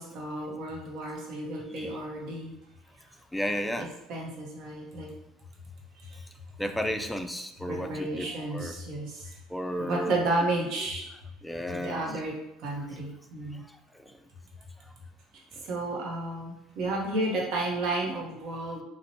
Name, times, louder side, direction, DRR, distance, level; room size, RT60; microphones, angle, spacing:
voice 1, 0.0-2.5 3.8-5.1 6.0-6.1 7.7-9.3 9.8-11.0 11.7-12.3 12.6-13.6 15.6-18.8, right 2 dB, 60° right, -1 dB, 0.8 m, -32 dB
voice 2, 3.3-3.9 6.1-6.2 6.6-8.8 9.5-10.2 11.4-12.0 13.5-14.2 15.6-15.7, equal, 5° left, 6 dB, 0.3 m, -33 dB
2.5 x 2.0 x 3.0 m, 0.85 s
hypercardioid pair, 70°, 0 cm